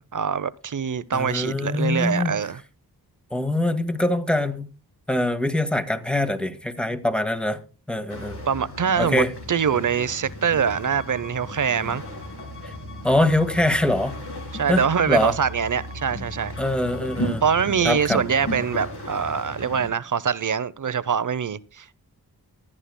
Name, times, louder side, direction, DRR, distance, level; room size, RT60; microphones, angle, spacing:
voice 1, 0.0-2.6 8.5-12.0 14.5-16.5 17.4-21.9, right 7 dB, 50° right, 0.7 m, -24 dB
voice 2, 1.1-2.3 3.3-4.7 5.1-7.6 7.9-8.4 9.0-9.3 12.6-12.7 13.0-14.2 14.7-15.3 16.6-17.4 17.8-18.2, left 1 dB, 5° left, 1.7 m, -23 dB
sound 1, 8.1-19.9, equal, 80° left, 3.8 m, -35 dB
Bowed string instrument, 10.7-17.2, left 7 dB, 30° left, 2.6 m, -47 dB
24.0 x 9.8 x 2.2 m
cardioid pair, 50°, 38 cm